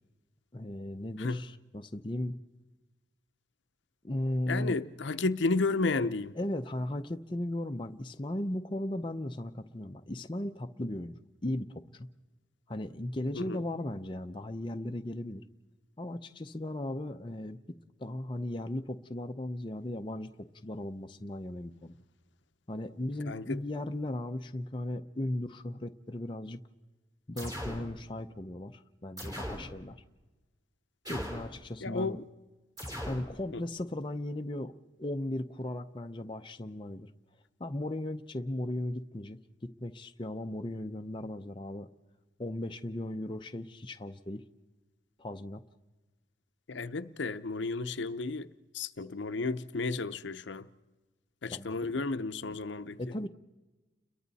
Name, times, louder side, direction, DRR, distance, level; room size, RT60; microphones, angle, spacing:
voice 1, 0.5-2.4 4.0-4.8 6.4-11.2 11.4-12.1 12.7-15.4 16.0-17.6 18.0-20.3 20.6-21.9 22.7-26.6 27.3-30.0 31.1-32.2 33.1-34.7 35.0-37.1 37.6-41.9 42.4-44.4 45.2-45.6 51.5-51.9 53.0-53.3, left 1 dB, 25° left, 0.6 m, -36 dB
voice 2, 4.5-6.4 13.3-13.6 23.3-23.6 31.8-32.3 33.5-33.6 46.7-48.5 48.7-50.7 51.4-53.0, left 3 dB, 65° left, 0.7 m, -32 dB
sound 1, 27.4-27.9 29.2-29.7 31.0-31.6 32.8-33.3, equal, 20° right, 3.5 m, -38 dB
30.0 x 22.5 x 4.1 m
head